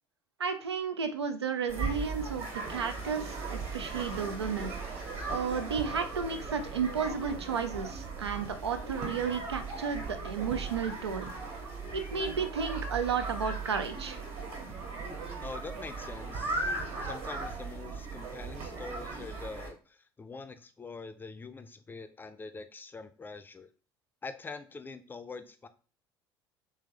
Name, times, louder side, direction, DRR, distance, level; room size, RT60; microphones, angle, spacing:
voice 1, 0.4-4.7 5.3-11.3 11.9-14.2, right 6 dB, 85° right, 8 dB, 0.4 m, -33 dB
sound 1, 1.7-19.7, right 3 dB, 50° right, 1.5 m, -38 dB
voice 2, 15.4-23.7 24.2-25.7, left 4 dB, 15° left, 10 dB, 0.4 m, -44 dB
3.3 x 3.2 x 3.2 m, 0.36 s
figure-of-eight pair, 65°, 14 cm